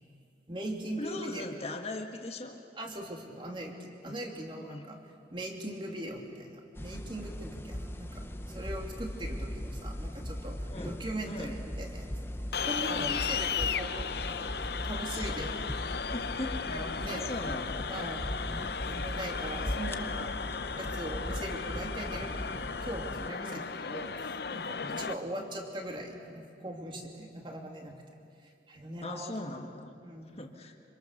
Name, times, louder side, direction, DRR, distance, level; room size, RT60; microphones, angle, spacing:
voice 1, 0.5-1.5 2.8-5.0 5.3-10.6 10.8-12.1 12.6-14.6 14.8-15.5 16.7-17.3 17.9-18.2 18.8-20.3 20.8-28.0 28.4-29.4 30.0-30.4, right 1 dB, 30° right, 1 dB, 2.9 m, -40 dB
voice 2, 1.0-2.6 4.0-4.2 4.6-4.8 10.7-10.9 11.3-11.6 12.9-13.1 15.1-15.4 16.1-17.8 23.4-23.7 24.7-25.0 29.0-29.9 30.3-30.8, left 2 dB, 35° left, 3 dB, 1.7 m, -40 dB
sound 1, 6.8-23.3, equal, 15° left, 0.7 m, -39 dB
sound 2, 12.5-25.1, left 6 dB, 65° left, 0.7 m, -35 dB
26.5 x 26.0 x 6.7 m, 2.4 s
head